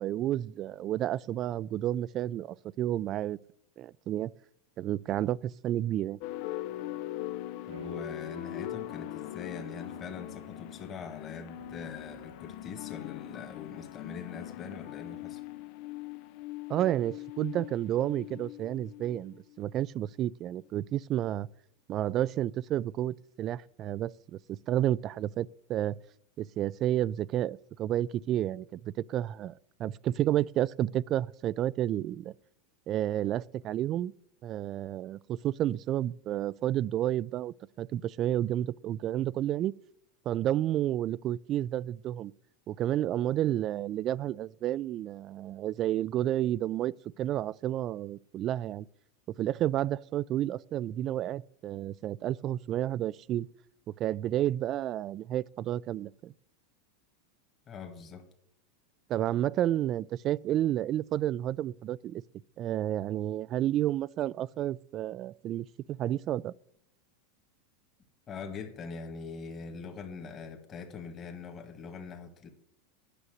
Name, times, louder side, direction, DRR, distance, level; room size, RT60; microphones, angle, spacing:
voice 1, 0.0-3.4 3.8-4.3 4.8-6.2 16.7-21.5 21.9-24.4 24.7-26.0 26.4-32.3 32.9-34.1 34.4-39.7 40.3-42.3 42.7-48.9 49.3-53.5 53.9-56.3 59.1-62.2 62.6-66.5, right 12 dB, 40° right, 0.3 m, -31 dB
sound 1, 6.2-19.6, left 15 dB, 55° left, 0.4 m, -41 dB
voice 2, 7.7-15.4 57.7-58.2 68.3-72.5, left 5 dB, 30° left, 1.8 m, -43 dB
sound 2, 7.7-16.4, right 8 dB, 75° right, 0.9 m, -55 dB
9.8 x 6.2 x 7.9 m
hypercardioid pair, 115°, 0 cm